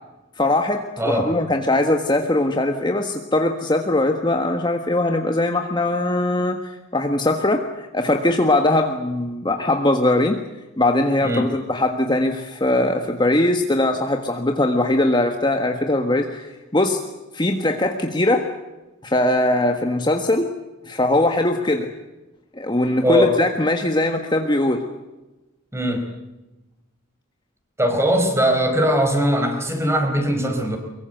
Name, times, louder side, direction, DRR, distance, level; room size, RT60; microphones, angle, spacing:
voice 1, 0.4-10.4 10.8-17.0 17.3-18.5 19.0-20.5 20.8-21.9 22.5-24.8, left 1 dB, 20° left, 4 dB, 1.5 m, -21 dB
voice 2, 23.0-23.3 25.7-26.1 27.8-30.8, equal, 15° right, 5 dB, 4.6 m, -20 dB
24.0 x 23.0 x 8.0 m, 1.1 s
head